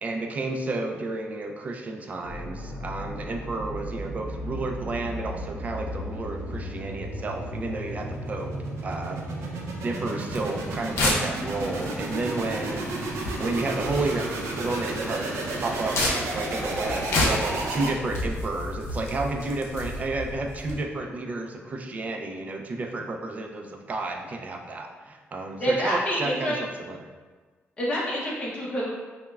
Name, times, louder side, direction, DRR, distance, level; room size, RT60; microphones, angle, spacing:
voice 1, 0.0-8.5 8.8-15.3 15.6-16.0 16.3-27.1, right 2 dB, 35° right, 3 dB, 0.4 m, -31 dB
sound 1, 2.2-18.3, right 2 dB, 90° right, 0.5 m, -33 dB
sound 2, 10.3-20.7, left 1 dB, 70° left, 0.7 m, -31 dB
voice 2, 25.6-26.6 27.8-28.9, equal, 25° left, -6 dB, 0.7 m, -27 dB
5.4 x 2.1 x 2.3 m, 1.4 s
cardioid pair, 130°, 5 cm